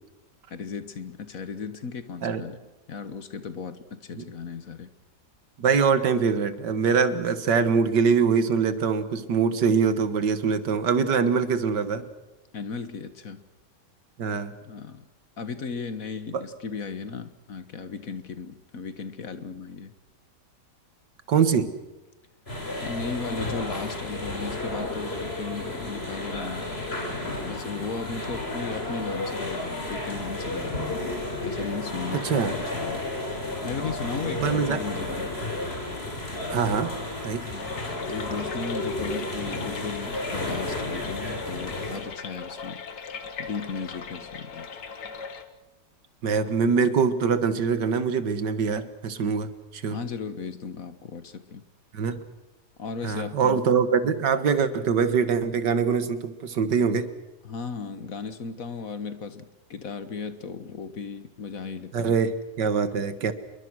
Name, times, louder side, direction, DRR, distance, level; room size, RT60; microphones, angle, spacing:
voice 1, 0.5-2.6 2.9-4.9 12.5-13.4 14.6-15.1 15.4-19.9 22.8-26.7 27.4-31.0 31.4-33.1 33.6-35.4 37.4-37.8 38.1-42.8 43.4-44.7 49.9-51.6 52.8-53.7 57.4-62.2, left 5 dB, 55° left, 12 dB, 1.7 m, -36 dB
voice 2, 5.6-12.1 14.2-14.5 16.3-16.4 21.3-21.7 32.1-32.5 34.4-34.8 36.5-36.9 37.2-37.5 46.2-50.0 51.9-52.2 53.0-57.1 61.9-63.3, right 6 dB, 90° right, 12 dB, 2.1 m, -23 dB
sound 1, 22.5-42.0, left 2 dB, 35° left, 4.2 m, -32 dB
sound 2, 37.6-45.4, left 5 dB, 75° left, 2.1 m, -39 dB
27.5 x 22.5 x 6.3 m, 1.0 s
omnidirectional pair, 1.8 m